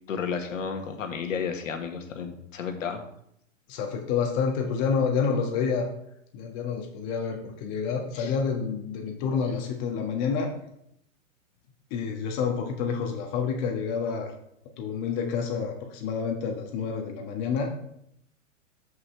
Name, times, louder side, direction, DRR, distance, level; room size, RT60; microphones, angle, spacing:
voice 1, 0.1-3.0 8.2-8.3, left 6 dB, 75° left, 5 dB, 1.8 m, -32 dB
voice 2, 3.7-5.9 6.3-10.5 11.9-14.3 14.8-17.7, left 6 dB, 40° left, 2 dB, 1.7 m, -28 dB
14.0 x 5.7 x 3.4 m, 0.75 s
hypercardioid pair, 120°, 39 cm